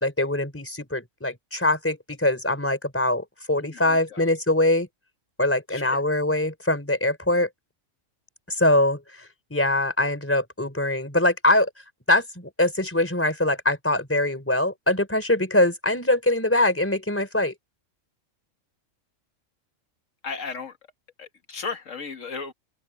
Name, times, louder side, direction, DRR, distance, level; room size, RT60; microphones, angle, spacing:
voice 1, 0.0-4.9 5.4-7.5 8.5-9.0 9.5-11.7 12.1-17.5, left 1 dB, 10° left, 4.2 m, -23 dB
voice 2, 3.6-4.2 5.7-6.0 20.2-20.7 21.2-22.5, left 5 dB, 70° left, 2.0 m, -35 dB
open air
omnidirectional pair, 1.4 m